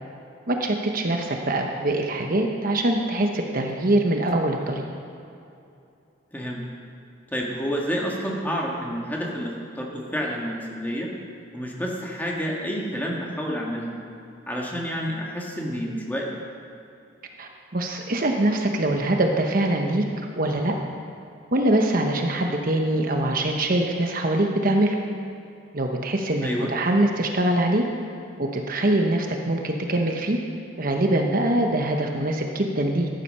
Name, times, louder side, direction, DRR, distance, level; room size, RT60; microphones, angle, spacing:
voice 1, 0.5-4.8 17.4-20.0 20.4-20.7 21.5-25.0 25.7-27.8 28.4-30.4 30.8-33.1, right 1 dB, 45° right, 3 dB, 1.0 m, -23 dB
voice 2, 6.3-6.6 7.3-11.1 11.5-13.9 14.5-16.3 26.4-26.7, equal, 10° left, -2 dB, 1.9 m, -29 dB
14.0 x 10.5 x 5.5 m, 2.7 s
head